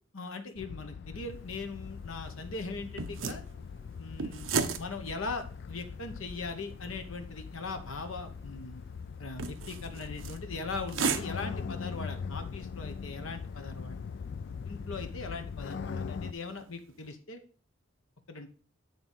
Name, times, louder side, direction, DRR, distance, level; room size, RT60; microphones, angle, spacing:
voice 1, 0.1-3.4 4.0-4.5 4.8-8.8 9.2-14.0 14.7-17.4 18.3-18.5, left 3 dB, 85° left, 6 dB, 1.1 m, -40 dB
sound 1, 0.6-16.3, left 5 dB, 55° left, 0.3 m, -41 dB
sound 2, 1.3-17.1, right 5 dB, 75° right, 0.7 m, -40 dB
9.0 x 3.9 x 5.5 m, 0.39 s
head